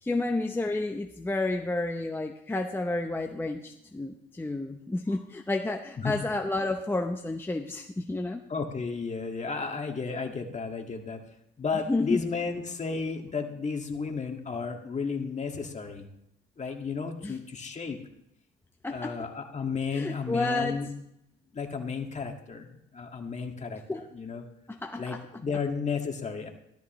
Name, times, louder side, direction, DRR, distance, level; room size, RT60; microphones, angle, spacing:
voice 1, 0.0-8.4 11.9-12.2 17.2-17.4 18.8-19.3 19.9-20.9 23.9-24.1 24.7-25.2, left 2 dB, 10° left, 4 dB, 0.7 m, -31 dB
voice 2, 8.5-11.2 11.6-16.0 16.6-18.0 18.9-20.9 21.5-22.7 22.9-23.8 24.1-24.4 25.0-26.5, left 5 dB, 35° left, 3 dB, 1.9 m, -33 dB
14.0 x 13.0 x 3.1 m, 0.80 s
cardioid pair, 90°, 20 cm